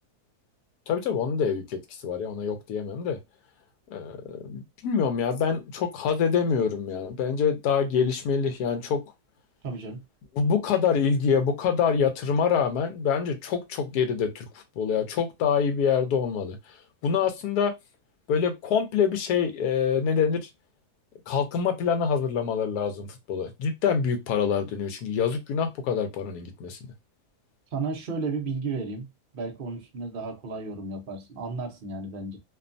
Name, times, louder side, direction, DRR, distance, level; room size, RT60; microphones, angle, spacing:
voice 1, 0.9-3.2 3.9-9.0 10.4-14.5 14.8-16.6 17.0-17.7 18.3-20.5 21.3-26.8, left 6 dB, 80° left, 1.2 m, -25 dB
voice 2, 9.6-10.0 27.7-29.1 29.3-32.4, right 4 dB, 55° right, 0.6 m, -33 dB
2.9 x 2.2 x 2.5 m
omnidirectional pair, 1.7 m